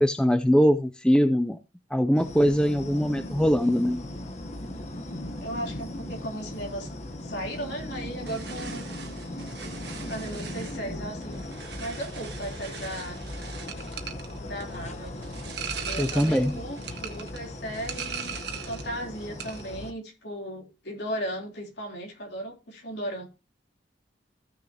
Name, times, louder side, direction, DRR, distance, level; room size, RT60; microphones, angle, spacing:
voice 1, 0.0-1.6 1.9-4.0 16.0-16.6, equal, 5° left, 0.4 m, -22 dB
sound 1, 2.2-19.9, left 1 dB, 35° left, 1.0 m, -38 dB
voice 2, 5.4-6.9 7.2-8.9 9.6-9.7 10.1-11.5 11.8-13.2 14.4-15.1 15.8-23.3, equal, 65° left, 3.3 m, -36 dB
sound 2, 8.2-18.9 19.2-19.7, right 7 dB, 60° right, 1.3 m, -40 dB
15.5 x 6.3 x 2.8 m
head